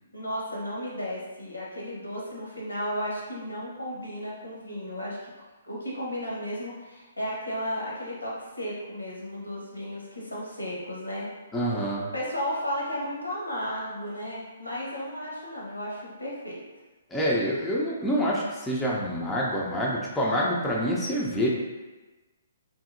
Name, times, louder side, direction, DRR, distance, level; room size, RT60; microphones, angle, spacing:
voice 1, 0.1-5.3 5.6-11.3 12.1-16.6, equal, 90° left, -5 dB, 0.9 m, -34 dB
voice 2, 11.5-12.1 17.1-21.5, equal, 10° left, -6 dB, 0.5 m, -27 dB
2.7 x 2.7 x 2.5 m, 1.2 s
figure-of-eight pair, 130°, 0 cm